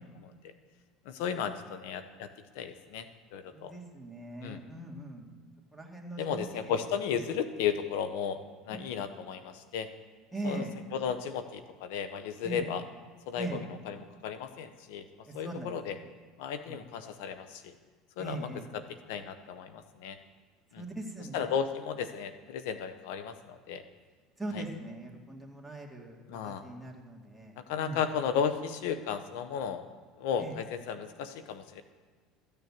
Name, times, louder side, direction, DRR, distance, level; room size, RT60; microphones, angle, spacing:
voice 1, 0.2-0.5 1.0-2.3 2.5-3.7 4.4-4.6 6.2-9.9 10.4-10.7 10.9-12.8 13.3-15.1 15.3-16.0 16.4-17.7 18.2-20.2 20.7-20.8 21.3-23.8 24.5-24.6 26.3-26.7 27.6-29.8 30.2-31.8, left 7 dB, 80° left, 10 dB, 0.8 m, -34 dB
voice 2, 3.5-5.3 5.7-6.8 10.3-10.7 12.4-12.7 13.4-13.6 15.4-15.7 16.7-16.8 18.2-18.7 20.8-21.5 24.4-26.2 26.4-27.5 27.8-28.0 30.4-30.5, right 2 dB, ahead, -1 dB, 2.2 m, -40 dB
14.0 x 6.7 x 8.6 m, 1.5 s
supercardioid pair, 120°, 0 cm